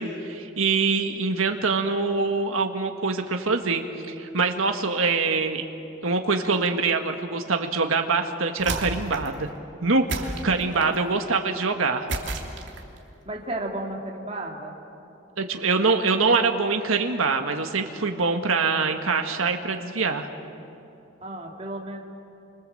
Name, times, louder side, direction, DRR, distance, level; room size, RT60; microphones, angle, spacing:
voice 1, 0.0-5.6 6.0-9.5 9.8-12.1 15.4-20.3, right 4 dB, 90° right, 4 dB, 1.6 m, -24 dB
sound 1, 8.6-9.4 10.1-11.0 12.1-13.0, right 2 dB, 60° right, 3.1 m, -31 dB
voice 2, 13.3-14.7 21.2-22.0, right 1 dB, 30° right, 0 dB, 2.6 m, -33 dB
30.0 x 25.5 x 7.8 m, 2.8 s
head